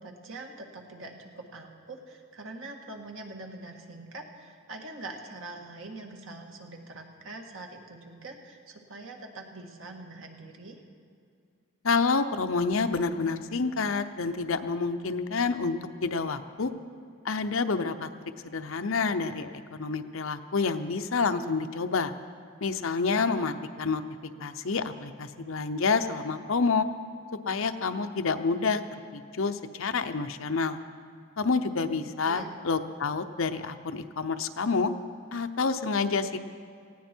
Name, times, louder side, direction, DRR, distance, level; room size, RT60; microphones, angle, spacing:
voice 1, 0.0-10.8 32.0-32.5, right 2 dB, 65° right, 2 dB, 1.8 m, -44 dB
voice 2, 11.8-16.7 17.2-18.1 18.4-22.1 22.6-24.0 24.4-26.9 27.5-28.8 29.1-30.8 31.4-34.9 35.3-36.4, left 4 dB, 70° left, 9 dB, 0.8 m, -28 dB
19.0 x 16.5 x 4.5 m, 2.3 s
head